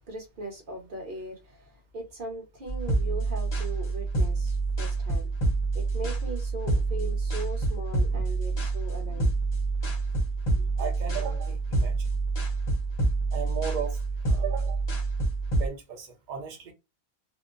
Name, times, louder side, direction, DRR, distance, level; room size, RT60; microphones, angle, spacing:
voice 1, 0.0-5.3 5.7-9.3 9.8-9.9 10.5-10.7, right 2 dB, 40° right, 1.0 m, -39 dB
sound 1, 2.7-15.7, right 3 dB, 40° left, 0.7 m, -27 dB
voice 2, 10.8-12.0 13.3-14.0 14.2-14.8 15.6-16.7, right 7 dB, 65° right, 0.4 m, -36 dB
2.6 x 2.1 x 2.4 m
omnidirectional pair, 1.5 m